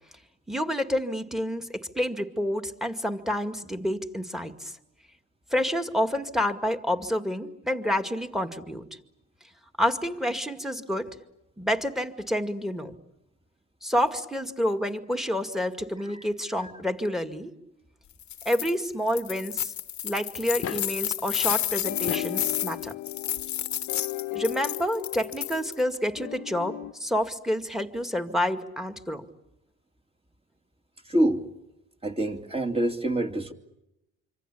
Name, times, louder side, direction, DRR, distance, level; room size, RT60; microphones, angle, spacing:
voice 1, 0.5-4.7 5.5-8.8 9.8-11.2 11.6-12.9 13.8-17.5 18.5-19.7 20.0-22.9 24.3-29.3, equal, ahead, 8 dB, 2.1 m, -28 dB
sound 1, 18.2-18.7 19.1-25.8, left 12 dB, 70° left, 1.1 m, -31 dB
sound 2, 20.6-21.0 21.9-22.4 23.8-23.9 25.6-25.7 25.9-26.0, left 8 dB, 50° left, 1.1 m, -35 dB
sound 3, 21.8-26.9, left 18 dB, 90° left, 1.1 m, -36 dB
voice 2, 31.1-31.5 32.0-33.5, right 1 dB, 20° right, 5 dB, 2.6 m, -25 dB
26.0 x 25.0 x 8.5 m, 0.86 s
cardioid pair, 90°, 30 cm